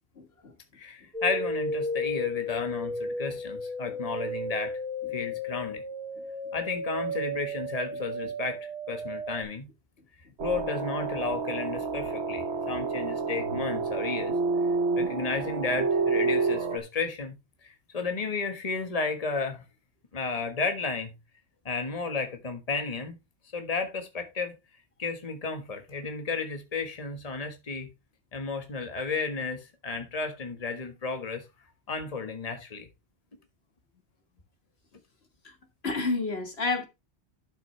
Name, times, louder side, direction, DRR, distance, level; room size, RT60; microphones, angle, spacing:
voice 1, 0.2-0.5 35.4-35.5 35.8-36.9, left 3 dB, 70° left, 1.9 m, -30 dB
voice 2, 0.7-4.8 5.1-5.8 6.5-9.7 10.4-14.3 15.0-17.4 17.6-19.6 20.1-21.1 21.6-23.2 23.5-24.5 25.0-27.9 28.3-31.4 31.9-32.9, left 4 dB, 35° left, 1.5 m, -33 dB
sound 1, 1.1-9.4, left 1 dB, 40° right, 2.4 m, -34 dB
sound 2, 10.4-16.8, right 4 dB, 80° right, 1.2 m, -29 dB
12.0 x 6.1 x 3.3 m
omnidirectional pair, 1.1 m